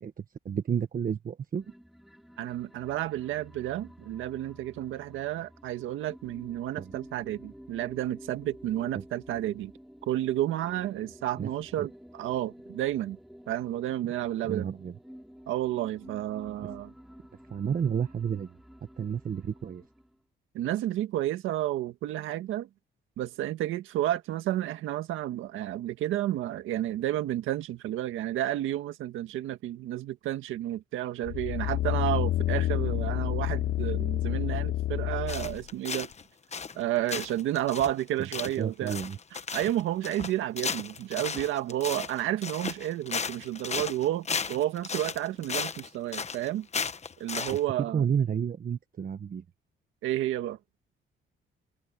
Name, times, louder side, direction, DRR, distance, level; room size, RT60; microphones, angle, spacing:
voice 1, 0.0-1.6 6.8-6.9 8.9-9.0 11.4-11.5 11.8-11.9 14.5-14.9 17.5-18.5 19.0-19.8 38.6-39.2 47.9-49.4, right 7 dB, 45° right, 1.2 m, -31 dB
sound 1, 1.6-20.2, equal, ahead, 3.5 m, -51 dB
voice 2, 2.4-9.7 10.1-13.2 13.5-14.7 15.5-16.9 20.5-22.7 23.2-36.1 36.8-39.0 39.3-46.7 47.2-48.1 50.0-50.6, right 13 dB, 90° right, 1.8 m, -31 dB
sound 2, 31.3-35.6 36.1-36.2, left 14 dB, 60° left, 0.4 m, -29 dB
sound 3, 35.3-36.2 36.5-36.8 37.1-47.6, left 5 dB, 35° left, 1.2 m, -35 dB
cardioid pair, 90°, 20 cm